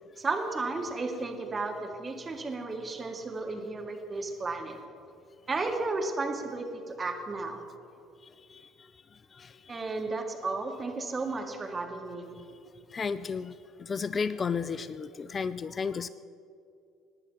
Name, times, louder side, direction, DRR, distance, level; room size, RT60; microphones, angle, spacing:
voice 1, 0.2-4.8 5.5-7.6 9.7-12.4, right 3 dB, 30° right, 3 dB, 2.0 m, -33 dB
voice 2, 9.4-9.8 12.9-13.5 13.8-16.1, left 5 dB, 35° left, 15 dB, 0.4 m, -33 dB
18.0 x 9.9 x 5.9 m, 2.5 s
figure-of-eight pair, 55°, 0 cm